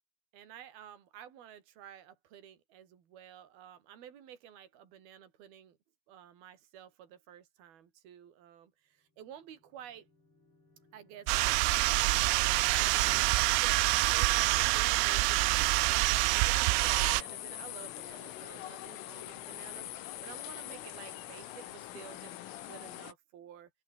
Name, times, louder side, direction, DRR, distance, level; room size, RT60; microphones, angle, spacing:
voice 1, 0.3-5.8 6.1-10.1 10.9-11.6 12.2-23.7, right 10 dB, 50° right, 4.8 m, -51 dB
sound 1, 9.1-14.9, left 2 dB, 25° left, 8.7 m, -61 dB
sound 2, 11.3-17.2, right 21 dB, 85° right, 3.4 m, -26 dB
sound 3, 16.8-23.1, left 13 dB, 80° left, 4.4 m, -43 dB
open air
omnidirectional pair, 5.8 m